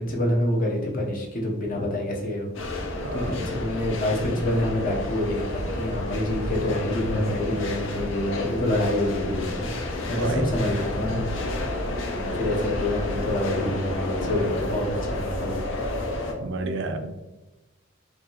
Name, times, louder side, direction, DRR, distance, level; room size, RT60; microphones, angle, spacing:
voice 1, 0.0-9.7 10.1-11.3 11.6-15.6, left 1 dB, 45° left, -1 dB, 0.9 m, -27 dB
sound 1, 2.5-16.3, left 1 dB, 75° left, 0.7 m, -30 dB
voice 2, 3.0-3.4 10.2-10.5 16.4-17.1, right 3 dB, 65° right, 7 dB, 0.4 m, -30 dB
4.9 x 2.7 x 3.0 m, 1.1 s
head